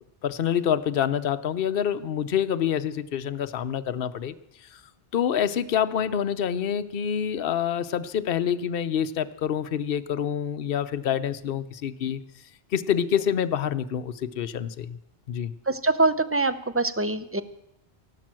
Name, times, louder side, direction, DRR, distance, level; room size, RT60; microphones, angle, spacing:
voice 1, 0.2-4.3 5.1-12.2 12.7-15.0 15.3-15.5, left 9 dB, 65° left, 11 dB, 0.9 m, -27 dB
voice 2, 15.7-17.4, right 3 dB, 15° right, 12 dB, 0.7 m, -24 dB
15.0 x 12.0 x 7.6 m, 0.80 s
omnidirectional pair, 1.1 m